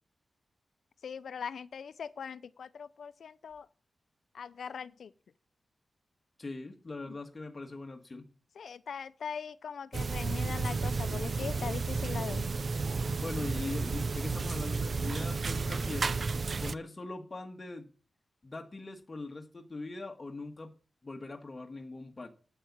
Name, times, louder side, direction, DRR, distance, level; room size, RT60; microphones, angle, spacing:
voice 1, 1.0-3.7 4.3-5.1 7.0-7.2 8.6-12.5, left 6 dB, 85° left, 0.6 m, -41 dB
voice 2, 6.4-8.3 13.2-16.2 16.6-17.9 18.4-20.7 21.0-22.3, left 3 dB, 35° left, 1.6 m, -41 dB
sound 1, 9.9-16.7, right 4 dB, 50° right, 0.5 m, -32 dB
8.8 x 8.3 x 7.4 m
wide cardioid pair, 85°, 0 cm